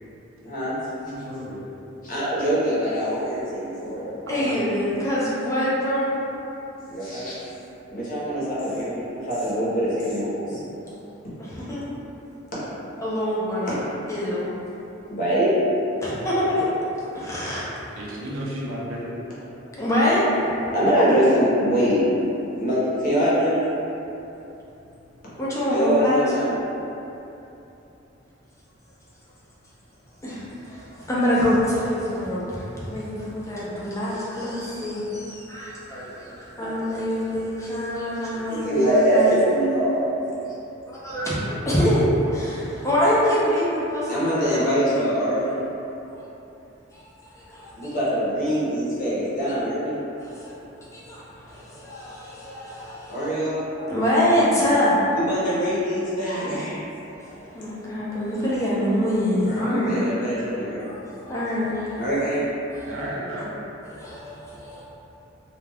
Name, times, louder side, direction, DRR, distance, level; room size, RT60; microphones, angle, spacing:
voice 1, 0.4-0.8 2.0-4.1 6.9-7.3 7.9-10.6 15.1-15.5 20.7-22.0 22.6-23.7 25.7-26.5 38.5-40.2 44.1-45.6 47.8-50.0 53.1-53.6 55.1-56.7 59.5-60.9 62.0-62.5, equal, 45° left, -10 dB, 0.8 m, -23 dB
voice 2, 1.1-1.7 4.3-4.6 17.9-19.1 62.9-63.5, equal, 90° right, -5 dB, 0.6 m, -33 dB
voice 3, 4.3-6.2 11.4-11.8 13.0-13.8 14.1-14.5 16.0-17.7 19.8-20.5 25.4-26.2 30.2-39.3 40.9-44.3 46.9-48.0 50.2-50.5 50.9-53.3 53.9-55.0 57.0-60.1 60.8-62.0 62.7-62.9 63.9-64.8, equal, 15° left, -8 dB, 0.5 m, -25 dB
2.3 x 2.2 x 3.3 m, 2.9 s
head